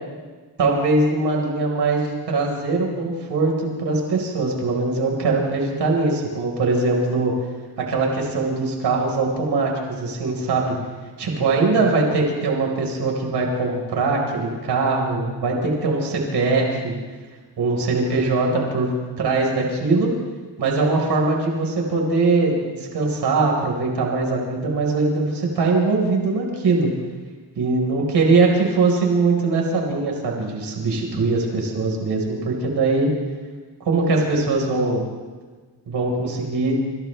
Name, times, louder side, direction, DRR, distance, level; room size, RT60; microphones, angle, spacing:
voice 1, 0.6-7.3 7.8-10.7 11.2-17.0 17.6-20.1 20.6-26.9 27.5-33.1 33.8-35.0 35.9-36.8, right 3 dB, 60° right, 0 dB, 4.8 m, -21 dB
28.0 x 27.5 x 3.4 m, 1.4 s
wide cardioid pair, 155°, 44 cm